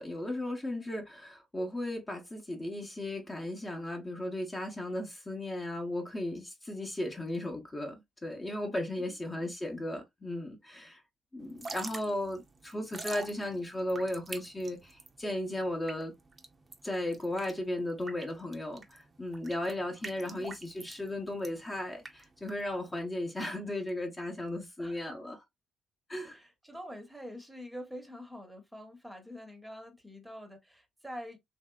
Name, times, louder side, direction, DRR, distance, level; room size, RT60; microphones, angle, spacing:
voice 1, 0.0-11.0 11.3-16.1 16.8-25.4 26.1-26.4, left 1 dB, 20° left, 0.8 m, -36 dB
voice 2, 9.0-9.5 20.0-20.5 24.8-25.2 26.2-31.4, equal, 5° right, 0.9 m, -46 dB
Drip / Trickle dribble, 11.4-23.0, right 3 dB, 30° right, 0.7 m, -46 dB
3.2 x 2.7 x 2.3 m
cardioid pair, 90°, 0 cm